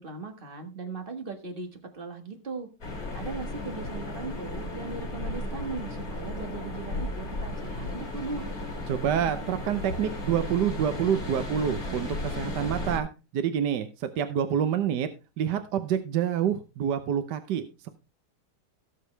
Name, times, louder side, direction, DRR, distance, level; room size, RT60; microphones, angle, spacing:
voice 1, 0.0-1.7 1.9-2.7 3.1-8.5, right 4 dB, 30° right, 5 dB, 1.8 m, -38 dB
sound 1, 2.8-13.0, left 2 dB, 55° left, 3.9 m, -35 dB
voice 2, 8.9-13.1 13.3-15.1 15.4-17.9, right 9 dB, 75° right, 9 dB, 1.5 m, -27 dB
17.5 x 6.7 x 3.3 m, 0.28 s
omnidirectional pair, 1.9 m